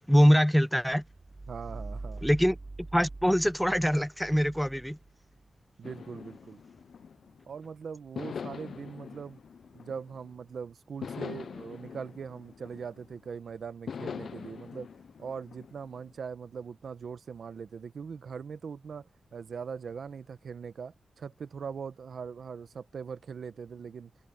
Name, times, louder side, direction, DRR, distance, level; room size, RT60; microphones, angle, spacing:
voice 1, 0.1-1.0 2.2-2.6 2.9-5.0, equal, ahead, 0.6 m, -23 dB
sound 1, 1.0-5.5, right 3 dB, 25° right, 3.4 m, -44 dB
voice 2, 1.5-2.3 5.8-6.6 7.5-9.4 9.7-14.9 15.2-24.1, right 6 dB, 60° right, 1.1 m, -41 dB
sound 2, 5.8-7.6 8.2-10.4 11.0-13.3 13.9-16.1, left 6 dB, 65° left, 0.4 m, -43 dB
open air
wide cardioid pair, 165°, 0 cm